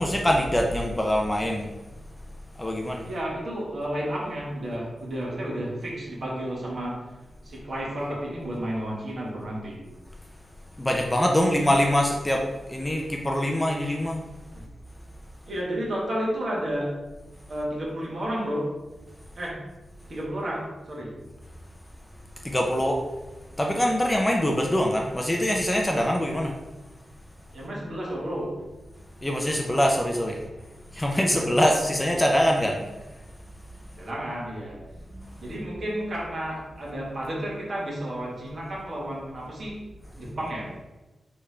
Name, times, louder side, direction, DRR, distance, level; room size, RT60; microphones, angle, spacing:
voice 1, 0.0-1.7 2.6-3.1 10.8-14.2 22.4-23.0 23.6-26.5 29.2-30.4 30.9-32.8 35.1-35.4, equal, 10° left, 1 dB, 0.4 m, -24 dB
voice 2, 3.0-7.2 7.4-9.9 14.5-14.6 15.4-17.0 17.5-18.7 19.3-19.6 20.1-21.1 27.5-28.6 31.3-31.4 34.0-34.9 35.4-39.8 40.1-40.8, equal, 50° right, -4 dB, 1.4 m, -32 dB
3.6 x 3.3 x 4.2 m, 1.1 s
wide cardioid pair, 125°, 0 cm